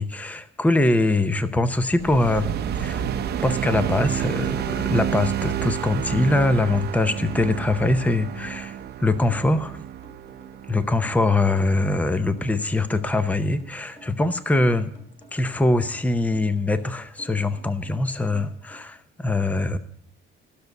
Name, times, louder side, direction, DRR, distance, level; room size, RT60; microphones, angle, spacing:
voice 1, 0.0-2.5 2.7-3.1 3.4-9.8 10.7-14.9 15.3-19.8, left 2 dB, 5° left, 11 dB, 0.7 m, -23 dB
sound 1, 2.0-12.5, right 10 dB, 50° right, 0.8 m, -30 dB
sound 2, 3.4-18.8, left 1 dB, 30° left, 3.0 m, -52 dB
14.5 x 6.7 x 8.0 m, 0.66 s
cardioid pair, 140°, 21 cm